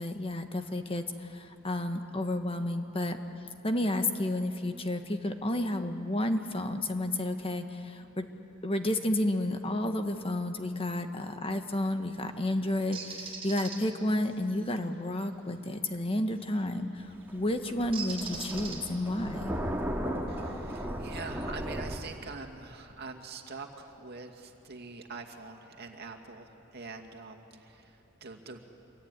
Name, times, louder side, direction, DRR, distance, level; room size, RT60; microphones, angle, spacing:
voice 1, 0.0-3.2 3.6-8.3 8.6-19.5, left 1 dB, 30° left, 7 dB, 1.4 m, -31 dB
Bird, 12.9-13.8 16.4-16.6 17.9-19.1, right 5 dB, 30° right, 5.0 m, -39 dB
Thunder, 17.0-22.0, equal, 10° right, 2.3 m, -36 dB
voice 2, 20.3-28.6, right 4 dB, 55° right, 3 dB, 2.3 m, -44 dB
26.5 x 23.0 x 9.8 m, 3.0 s
head